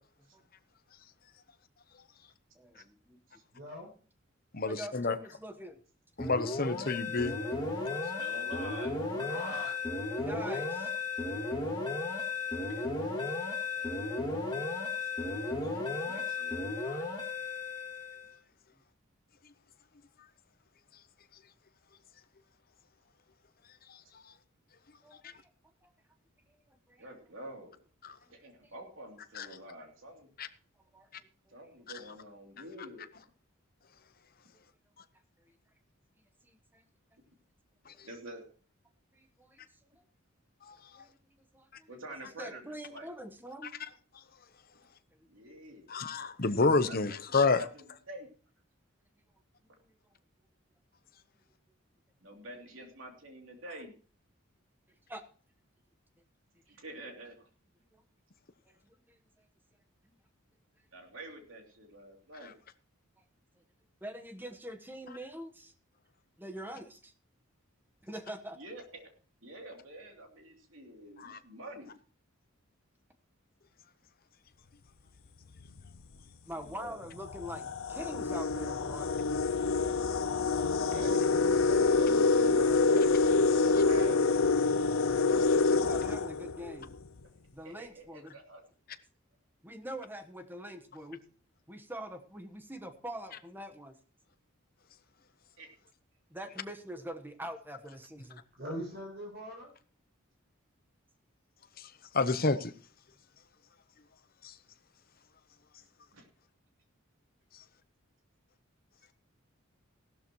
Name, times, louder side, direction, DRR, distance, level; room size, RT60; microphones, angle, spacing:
voice 1, 2.5-3.2 4.7-5.8 10.2-10.9 13.7-14.5 25.0-25.5 25.8-25.9 26.7-27.0 28.3-28.7 30.9-31.1 31.5-31.6 36.4-36.8 39.1-39.6 41.0-41.1 41.5-41.9 42.4-43.7 55.1-55.2 56.7-56.8 57.9-58.0 58.7-58.8 64.0-65.7 66.4-67.1 68.0-68.6 76.5-79.1 85.8-86.9 87.5-88.4 89.6-91.2 91.7-94.0 96.3-98.4, equal, 10° right, 1.2 m, -44 dB
voice 2, 3.5-3.9 8.2-8.8 9.1-9.8 98.5-99.7, equal, 50° right, 7.7 m, -42 dB
voice 3, 4.5-5.2 6.2-7.3 16.9-17.0 29.4-29.5 30.4-30.5 37.9-38.0 45.9-47.6 71.2-71.4 101.8-101.9 102.1-102.7 104.4-104.5, left 3 dB, 45° left, 0.9 m, -29 dB
sound 1, 6.2-18.3, left 3 dB, 20° left, 2.4 m, -35 dB
voice 4, 7.9-9.0 15.0-15.1 15.6-16.7 27.0-27.8 28.3-30.3 31.5-33.0 38.0-38.4 41.9-43.1 45.3-45.9 46.5-48.3 52.2-53.9 56.7-57.5 60.9-62.5 68.6-69.1 69.4-72.0 76.5-77.0 80.7-84.2 87.6-88.6 95.6-95.7 106.1-106.3, right 1 dB, 70° right, 3.1 m, -47 dB
sound 2, 75.6-75.9 76.7-76.8 77.2-87.0, left 4 dB, 80° left, 0.7 m, -27 dB
16.5 x 12.5 x 3.1 m
head